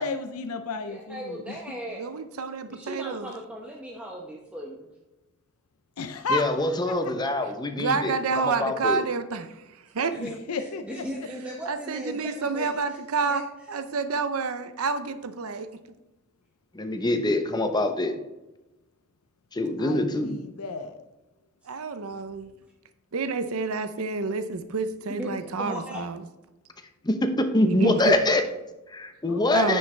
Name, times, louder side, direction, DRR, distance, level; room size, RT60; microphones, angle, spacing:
voice 1, 0.0-1.8 6.0-6.6 6.9-7.1 10.2-11.3 19.8-21.0 29.3-29.8, left 3 dB, 85° left, 8 dB, 0.6 m, -33 dB
voice 2, 0.9-2.0 2.7-4.9 10.2-13.0 13.3-13.4 25.1-26.0, equal, 5° right, -2 dB, 0.9 m, -37 dB
voice 3, 2.0-3.3 7.8-9.6 9.9-10.2 11.7-15.7 21.7-22.5 23.1-26.2 27.6-28.1 29.5-29.8, right 4 dB, 75° right, 10 dB, 0.6 m, -29 dB
voice 4, 6.3-9.0 16.7-18.1 19.5-20.3 27.0-28.4 28.9-29.8, left 1 dB, 20° left, 6 dB, 0.8 m, -24 dB
9.7 x 6.5 x 3.3 m, 1.0 s
head